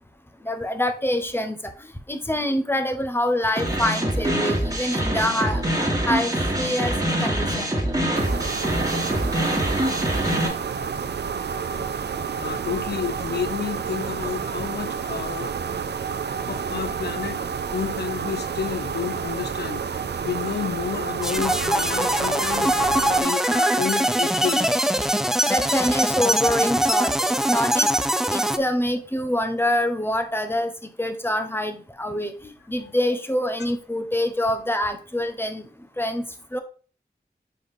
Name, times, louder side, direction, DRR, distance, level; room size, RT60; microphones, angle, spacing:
voice 1, 0.4-1.6 2.1-5.6 6.1-6.9 7.2-7.7 25.5-27.9 28.3-35.6 36.0-36.2 36.5-36.6, left 1 dB, 15° left, 1.1 m, -25 dB
sound 1, 3.6-10.5, right 1 dB, 20° right, 2.0 m, -24 dB
sound 2, 8.1-23.2, right 6 dB, 85° right, 0.4 m, -29 dB
voice 2, 12.4-15.5 16.5-17.4 17.7-22.8 23.1-24.7, left 7 dB, 75° left, 0.4 m, -30 dB
sound 3, 21.2-28.6, right 1 dB, 5° right, 0.5 m, -22 dB
5.2 x 3.9 x 4.9 m
wide cardioid pair, 45°, 17 cm